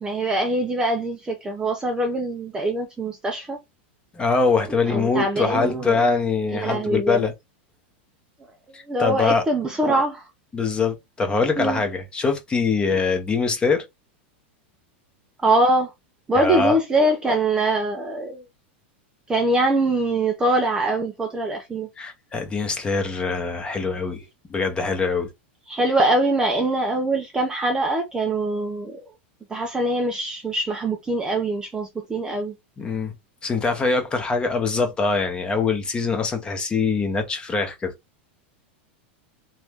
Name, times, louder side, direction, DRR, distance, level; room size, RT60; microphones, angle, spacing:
voice 1, 0.0-3.6 4.9-6.0 6.5-7.2 8.9-10.2 11.6-11.8 12.9-13.0 15.4-15.9 16.3-18.4 19.3-21.9 25.7-29.0 29.5-32.5, right 2 dB, 10° right, 0.6 m, -23 dB
voice 2, 4.1-7.3 8.7-9.4 10.5-13.8 16.3-16.8 22.0-25.3 32.8-33.1 33.4-37.9, left 4 dB, 15° left, 0.9 m, -23 dB
3.1 x 2.6 x 3.5 m
supercardioid pair, 140°, 6 cm